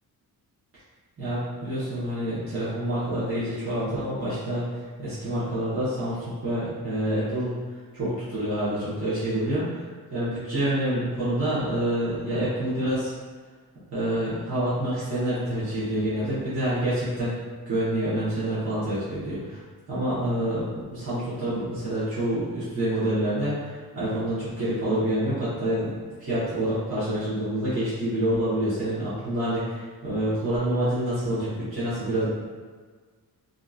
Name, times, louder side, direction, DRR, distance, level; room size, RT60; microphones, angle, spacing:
voice 1, 1.2-4.6 5.0-7.5 7.9-9.6 10.1-13.1 13.9-17.3 17.7-19.6 19.9-32.3, right 1 dB, 40° right, -12 dB, 1.1 m, -27 dB
2.8 x 2.5 x 2.4 m, 1.5 s
wide cardioid pair, 140°, 36 cm